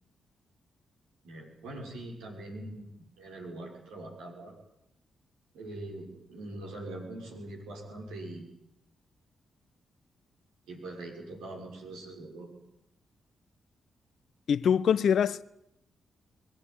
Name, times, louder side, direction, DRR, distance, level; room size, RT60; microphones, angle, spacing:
voice 1, 1.2-4.5 5.5-8.5 10.7-12.5, right 2 dB, 85° right, 6.3 m, -42 dB
voice 2, 14.5-15.4, left 8 dB, 70° left, 0.7 m, -24 dB
22.5 x 15.0 x 9.9 m
hypercardioid pair, 40°, 0 cm